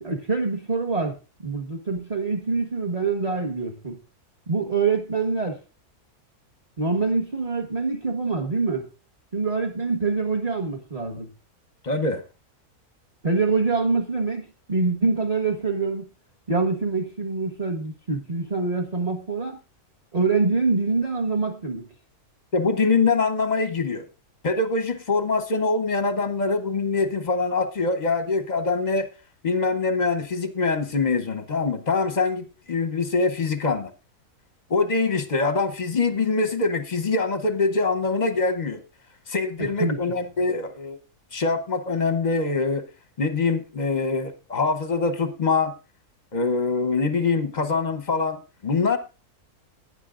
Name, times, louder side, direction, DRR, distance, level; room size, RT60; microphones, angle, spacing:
voice 1, 0.0-1.2 1.4-4.0 4.5-5.6 6.8-8.9 9.3-11.3 13.2-16.1 16.5-19.6 20.1-21.8 39.6-40.0, right 4 dB, 25° right, 0 dB, 1.2 m, -25 dB
voice 2, 11.8-12.2 22.5-24.0 24.4-29.1 29.4-33.9 34.7-38.8 39.3-41.0 41.3-42.9 43.2-45.7 46.3-49.0, left 4 dB, 35° left, 9 dB, 0.8 m, -24 dB
18.5 x 9.7 x 2.5 m, 0.31 s
omnidirectional pair, 1.7 m